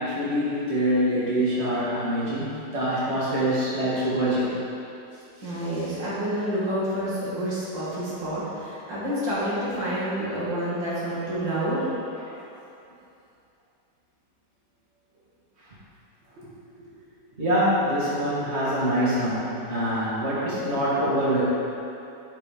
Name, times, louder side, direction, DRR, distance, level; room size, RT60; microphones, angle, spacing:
voice 1, 0.0-4.6 17.4-21.4, equal, 35° right, -9 dB, 2.5 m, -25 dB
voice 2, 5.4-11.8 16.4-16.5 18.4-18.5, equal, 90° right, -10 dB, 3.1 m, -28 dB
11.5 x 4.8 x 5.2 m, 2.7 s
omnidirectional pair, 1.9 m